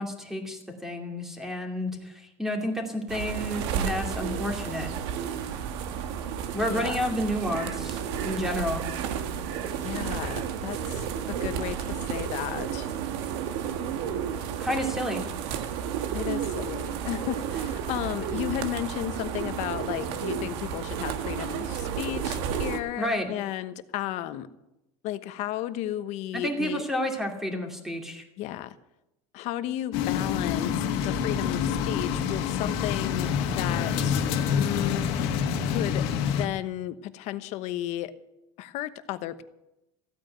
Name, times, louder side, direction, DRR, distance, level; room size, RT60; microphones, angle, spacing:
voice 1, 0.0-4.9 6.5-8.9 14.6-15.2 23.0-23.3 26.3-28.2, left 1 dB, 5° right, 3 dB, 2.5 m, -30 dB
sound 1, 3.1-22.8, right 8 dB, 85° right, 1.6 m, -32 dB
voice 2, 6.7-7.0 9.8-12.9 16.1-24.5 25.0-26.8 28.4-28.7 29.3-34.2 34.5-35.1 35.6-38.1 38.6-39.4, left 13 dB, 55° left, 12 dB, 1.1 m, -34 dB
sound 2, 29.9-36.5, left 7 dB, 80° left, 1.8 m, -27 dB
15.5 x 9.1 x 9.1 m, 0.91 s
cardioid pair, 155°, 14 cm